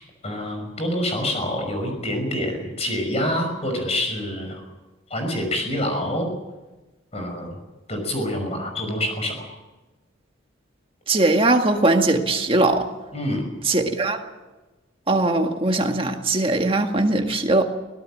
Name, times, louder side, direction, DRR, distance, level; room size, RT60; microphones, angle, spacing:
voice 1, 0.2-4.6 5.1-6.3 7.1-7.6 7.9-9.4 13.1-13.4, left 1 dB, 30° left, 5.9 m, -26 dB
voice 2, 11.1-12.8 13.7-14.2 15.1-17.6, right 2 dB, 25° right, 1.8 m, -20 dB
24.0 x 17.5 x 7.5 m
head